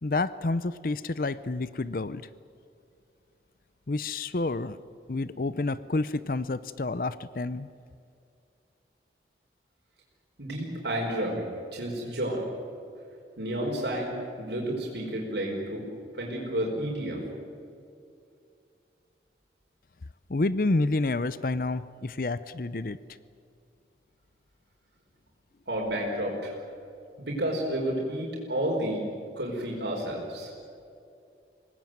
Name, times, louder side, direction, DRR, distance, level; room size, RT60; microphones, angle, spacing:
voice 1, 0.0-2.2 3.9-4.8 5.1-7.7 20.3-23.0, left 2 dB, 50° left, 16 dB, 0.6 m, -29 dB
voice 2, 10.4-11.4 11.7-12.5 13.4-15.9 16.1-17.2 25.7-26.6 27.2-29.0 29.4-30.5, right 1 dB, 75° right, -2 dB, 5.1 m, -31 dB
24.0 x 19.5 x 9.3 m, 2.5 s
head